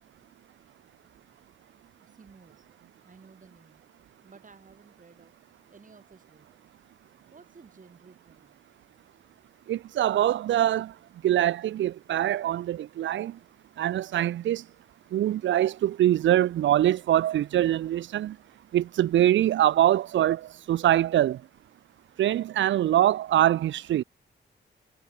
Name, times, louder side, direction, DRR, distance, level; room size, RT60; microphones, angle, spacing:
voice 1, 2.0-2.7 3.0-3.8 4.2-5.3 5.7-6.5 7.3-8.6, right 4 dB, 45° right, 5.1 m, -54 dB
voice 2, 9.7-10.9 11.2-13.4 13.8-14.6 15.1-18.4 18.7-21.4 22.2-24.0, right 12 dB, 85° right, 0.5 m, -24 dB
cardioid pair, 75°, 19 cm